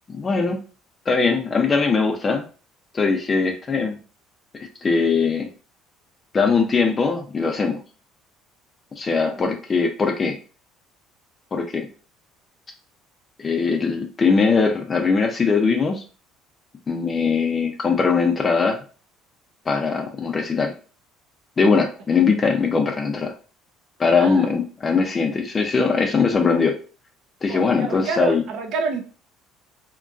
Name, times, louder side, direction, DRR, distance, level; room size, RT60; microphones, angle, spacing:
voice 1, 0.1-0.6 1.1-2.4 2.9-4.0 4.5-5.5 6.3-7.8 8.9-10.4 11.5-11.9 13.4-16.0 16.9-18.8 19.7-20.7 21.6-23.3 24.0-26.7 27.4-28.4, left 4 dB, 30° left, 4 dB, 0.5 m, -21 dB
voice 2, 24.2-24.5 27.5-29.0, right 4 dB, 60° right, 4 dB, 0.6 m, -28 dB
2.9 x 2.4 x 2.3 m, 0.37 s
cardioid pair, 105°, 0 cm